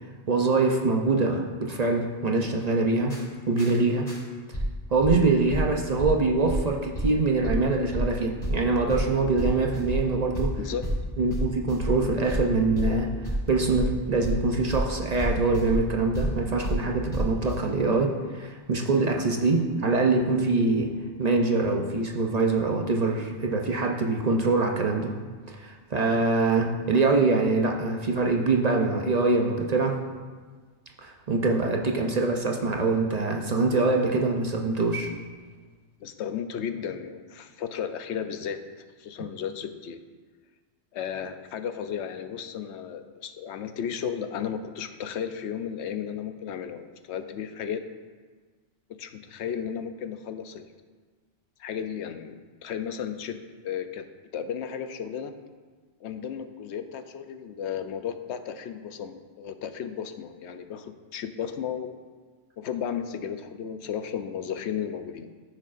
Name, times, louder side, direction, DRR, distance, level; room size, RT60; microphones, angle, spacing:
voice 1, 0.3-3.2 3.5-4.1 4.9-10.5 11.2-13.1 13.5-20.9 21.2-25.2 25.5-30.0 31.0-35.1, right 3 dB, 45° right, 1 dB, 0.7 m, -24 dB
sound 1, 3.1-3.2 3.6-3.7 4.1-4.2 4.5-4.6 5.0-5.1 5.5-5.6 6.0-6.1 6.5-6.6 6.9-7.1 7.4-7.6 7.9-8.0 8.4-17.6, equal, 55° left, 2.7 m, -31 dB
voice 2, 36.0-38.6 39.0-40.0 40.9-47.8 49.0-50.7 51.6-52.3 52.6-54.0 54.3-55.3 56.0-62.0 62.6-65.3, left 8 dB, 85° left, 9 dB, 0.9 m, -34 dB
14.0 x 6.5 x 2.5 m, 1.5 s
omnidirectional pair, 1.1 m